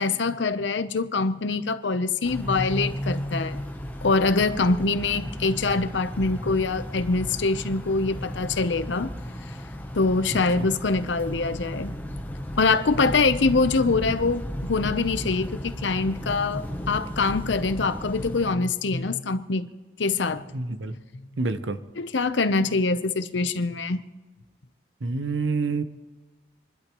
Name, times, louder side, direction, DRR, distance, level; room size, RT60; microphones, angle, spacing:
voice 1, 0.0-3.6 4.0-9.1 9.9-11.9 12.6-19.7 20.0-20.4 22.0-24.0, left 3 dB, 80° left, 12 dB, 0.8 m, -24 dB
sound 1, 2.2-18.5, equal, 10° left, 0.9 m, -34 dB
voice 2, 10.3-10.7 20.5-20.9 21.4-21.8 25.0-25.8, right 3 dB, 85° right, 10 dB, 0.9 m, -28 dB
27.5 x 12.0 x 3.1 m, 1.3 s
head